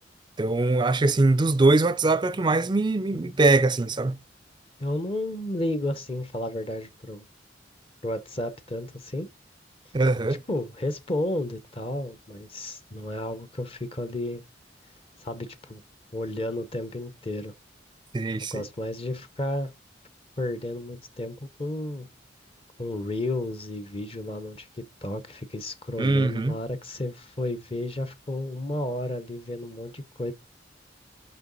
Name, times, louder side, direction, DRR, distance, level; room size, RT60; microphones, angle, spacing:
voice 1, 0.4-4.2 9.9-10.4 18.1-18.6 26.0-26.6, right 2 dB, 25° right, 0.5 m, -22 dB
voice 2, 4.8-7.3 8.0-9.3 10.5-14.4 15.2-15.8 16.1-17.5 18.4-19.7 20.4-22.1 22.8-30.3, left 1 dB, 30° left, 0.8 m, -32 dB
6.7 x 5.5 x 3.9 m
head